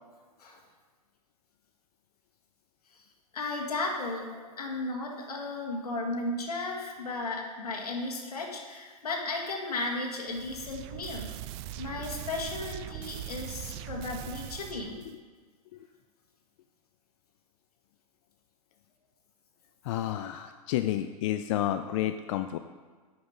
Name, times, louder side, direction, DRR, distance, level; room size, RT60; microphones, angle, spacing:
voice 1, 3.3-11.3 11.8-15.0, left 2 dB, 80° left, 0 dB, 2.0 m, -35 dB
sound 1, 10.3-15.2, right 12 dB, 45° right, 0.5 m, -41 dB
voice 2, 19.8-22.6, left 12 dB, 55° left, 9 dB, 0.4 m, -30 dB
9.4 x 6.1 x 5.2 m, 1.5 s
hypercardioid pair, 105°, 19 cm